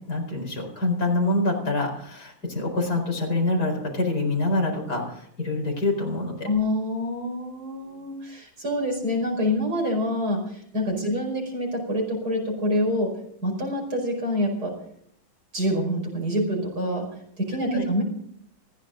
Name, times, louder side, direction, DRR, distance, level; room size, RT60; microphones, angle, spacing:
voice 1, 0.1-6.5 17.6-17.9, left 2 dB, 50° left, 1 dB, 5.1 m, -26 dB
voice 2, 6.4-13.1 13.4-14.8 15.5-17.1 17.4-18.0, left 1 dB, 50° right, 0 dB, 5.6 m, -26 dB
20.5 x 15.0 x 3.9 m, 0.68 s
omnidirectional pair, 2.1 m